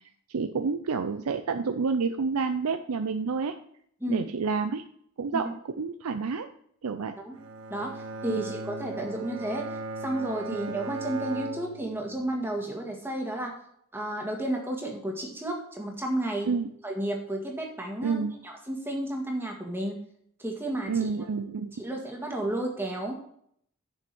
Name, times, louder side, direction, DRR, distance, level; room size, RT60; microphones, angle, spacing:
voice 1, 0.3-3.6 4.1-4.8 5.2-5.5 5.8-6.5 6.8-7.1 8.3-8.4 10.5-10.6 16.5-16.7 18.0-18.3 20.9-21.7, right 5 dB, 90° right, 8 dB, 0.5 m, -29 dB
Bowed string instrument, 7.3-12.6, right 3 dB, 70° right, 1.7 m, -37 dB
voice 2, 7.7-13.5 13.9-16.5 16.8-20.0 20.4-21.1 21.8-23.1, right 1 dB, 10° right, 0 dB, 1.8 m, -32 dB
7.3 x 6.1 x 6.1 m, 0.66 s
head